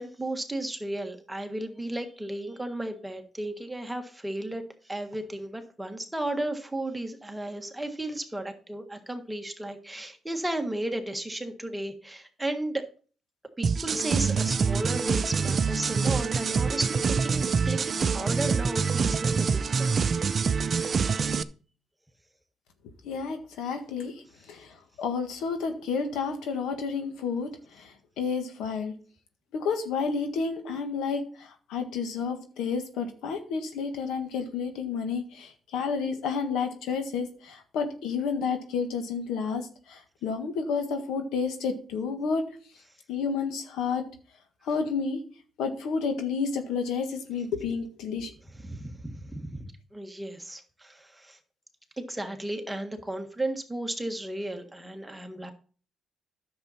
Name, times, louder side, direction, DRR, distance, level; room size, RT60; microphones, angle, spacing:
voice 1, 0.0-12.8 13.6-20.0 48.6-51.4 52.0-55.5, right 1 dB, 10° right, 5 dB, 1.5 m, -34 dB
sound 1, 13.6-21.4, right 5 dB, 45° right, 0.5 m, -26 dB
voice 2, 23.0-28.9 29.5-42.4 43.1-44.0 44.6-45.2 45.6-48.3, left 5 dB, 85° left, 6 dB, 1.6 m, -31 dB
10.5 x 6.9 x 4.3 m, 0.41 s
cardioid pair, 90°, 0 cm